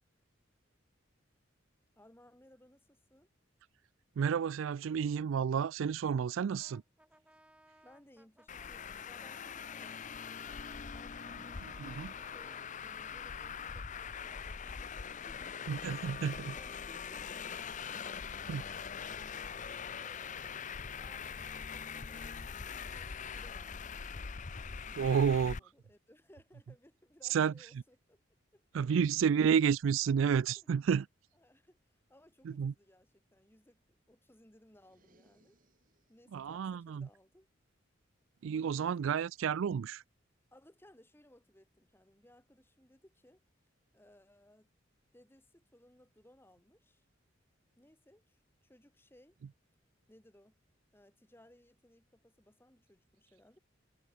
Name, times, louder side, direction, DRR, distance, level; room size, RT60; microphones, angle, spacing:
voice 1, 2.0-3.3 7.8-10.2 10.9-11.6 12.2-15.6 19.9-20.6 21.0-23.9 24.7-28.2 28.5-29.1 30.6-30.7 31.3-33.8 34.1-35.6 36.1-37.5 38.4-39.0 40.5-43.4 43.9-44.7 45.1-47.0 47.8-49.4 50.1-50.6 50.9-53.6, left 1 dB, 10° left, 2.1 m, -63 dB
voice 2, 4.2-6.8 11.8-12.1 15.7-16.5 18.5-18.6 25.0-25.5 27.3-27.5 28.7-31.0 32.5-32.7 36.3-37.1 38.4-40.0, right 7 dB, 75° right, 0.3 m, -30 dB
Brass instrument, 6.6-12.7, right 1 dB, 5° right, 4.8 m, -64 dB
Traffic noise roadway noise, 8.5-25.6, left 6 dB, 40° left, 0.6 m, -43 dB
sound 1, 34.7-36.3, right 2 dB, 45° right, 3.0 m, -70 dB
head